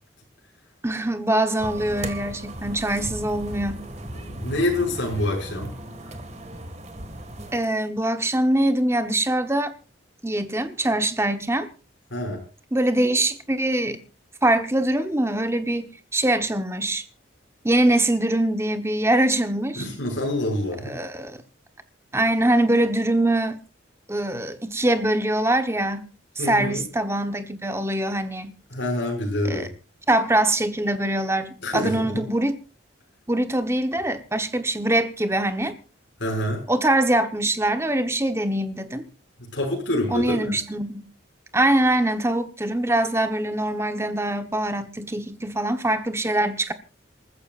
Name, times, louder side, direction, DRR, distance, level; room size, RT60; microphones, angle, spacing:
voice 1, 0.8-3.8 7.5-9.7 10.2-11.7 12.7-14.0 14.4-17.0 17.6-19.9 20.8-21.4 22.1-23.6 24.1-26.1 26.4-28.6 29.5-29.7 30.1-32.5 33.3-35.7 36.7-39.1 40.1-41.1 41.5-46.7, right 1 dB, 15° right, 1.0 m, -23 dB
sound 1, 1.6-7.6, right 1 dB, 35° right, 1.8 m, -36 dB
voice 2, 4.2-5.8 6.0-6.1 12.1-12.4 19.7-21.0 26.4-26.8 28.7-29.7 31.6-32.2 36.2-36.6 39.4-40.6, left 1 dB, 65° left, 5.9 m, -27 dB
27.5 x 14.5 x 2.5 m
head